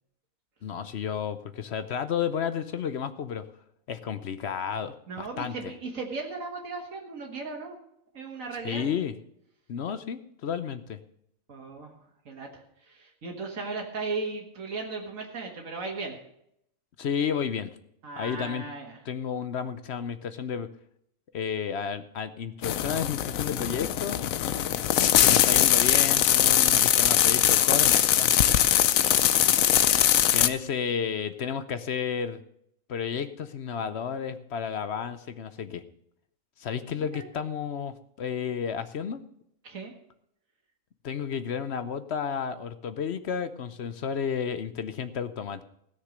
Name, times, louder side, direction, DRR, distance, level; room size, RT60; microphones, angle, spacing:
voice 1, 0.6-3.4 3.9-5.7 8.6-9.1 9.7-11.0 17.0-17.7 18.2-18.6 19.0-20.7 21.3-24.2 25.2-28.4 30.3-32.4 32.9-35.8 36.6-39.2 41.0-45.6, left 7 dB, 60° left, 12 dB, 0.9 m, -32 dB
voice 2, 5.1-7.8 8.1-8.9 11.5-11.9 12.3-16.2 18.0-19.0 29.0-29.7 37.0-37.3 39.6-39.9, right 3 dB, 75° right, 1 dB, 2.1 m, -37 dB
sound 1, 22.6-30.5, left 11 dB, 90° left, 1.1 m, -21 dB
16.5 x 6.7 x 6.4 m, 0.73 s
omnidirectional pair, 1.4 m